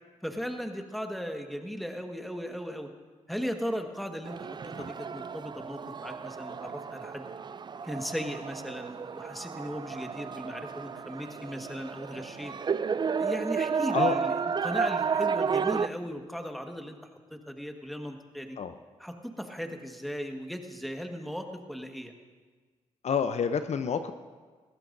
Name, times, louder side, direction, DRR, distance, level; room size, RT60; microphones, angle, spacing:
voice 1, 0.2-2.9 3.3-7.3 7.8-12.5 13.1-14.3 14.6-17.0 17.3-18.6 19.0-22.1, equal, ahead, 4 dB, 1.5 m, -37 dB
sound 1, 4.2-15.9, right 6 dB, 35° right, 0.4 m, -32 dB
voice 2, 23.0-24.1, left 6 dB, 60° left, 9 dB, 0.6 m, -29 dB
20.5 x 15.0 x 2.6 m, 1.4 s
supercardioid pair, 55°, 13 cm